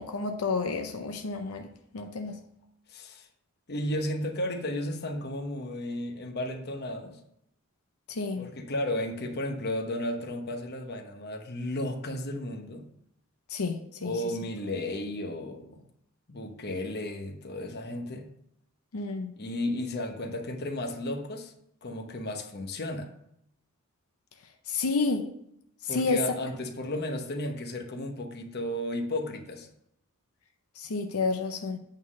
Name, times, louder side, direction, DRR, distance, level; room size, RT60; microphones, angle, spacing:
voice 1, 0.0-1.7 1.9-2.4 8.1-8.5 13.5-14.1 18.9-19.3 24.7-25.3 25.9-26.2 30.8-31.8, left 4 dB, 85° left, 0.7 m, -30 dB
voice 2, 2.9-3.3 3.7-7.2 8.4-12.9 14.0-15.8 16.3-18.3 19.4-21.5 21.8-23.1 25.9-29.7, left 1 dB, 50° left, 1.0 m, -34 dB
8.8 x 3.8 x 6.1 m
head